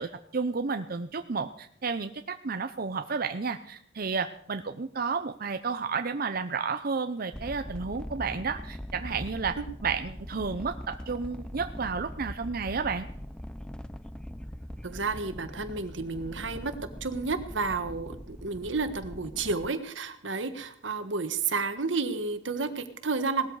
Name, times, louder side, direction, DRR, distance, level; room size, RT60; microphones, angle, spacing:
voice 1, 0.0-9.6 9.8-13.1, right 5 dB, 50° right, 8 dB, 0.7 m, -32 dB
sound 1, 7.3-19.7, equal, 5° left, 0.5 m, -41 dB
voice 2, 14.8-16.7 17.0-23.5, right 4 dB, 80° right, 10 dB, 1.5 m, -31 dB
18.5 x 13.0 x 4.8 m, 0.66 s
head